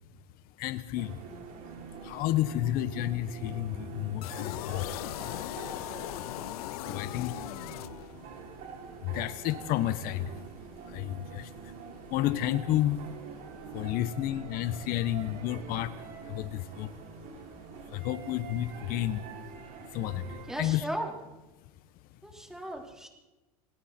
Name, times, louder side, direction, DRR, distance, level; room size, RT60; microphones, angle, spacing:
voice 1, 0.6-1.2 2.0-5.0 6.9-7.4 9.0-10.4 10.9-11.5 12.1-13.0 13.7-16.9 17.9-19.2 19.9-20.9, left 13 dB, 50° left, 13 dB, 1.2 m, -31 dB
sound 1, 0.9-20.5, right 5 dB, 50° right, 6.4 m, -46 dB
sound 2, 4.2-8.4, left 18 dB, 75° left, 0.6 m, -38 dB
voice 2, 20.5-21.1 22.2-23.1, right 1 dB, 5° right, 1 dB, 4.6 m, -36 dB
28.0 x 20.5 x 4.5 m, 1.1 s
supercardioid pair, 120°, 19 cm